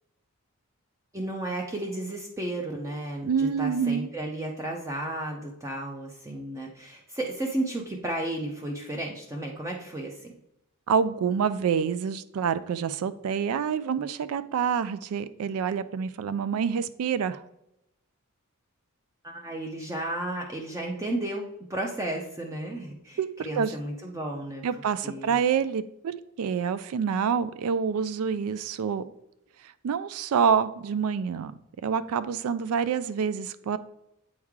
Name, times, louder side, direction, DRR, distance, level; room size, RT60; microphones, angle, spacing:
voice 1, 1.1-10.3 19.2-24.6 25.0-25.4, right 1 dB, 15° right, 0 dB, 0.5 m, -33 dB
voice 2, 3.2-4.1 10.9-17.4 23.2-23.3 23.6-23.7 24.6-29.1 29.8-31.5 31.8-33.8, right 7 dB, 75° right, 14 dB, 0.3 m, -27 dB
8.3 x 3.2 x 3.5 m, 0.82 s
head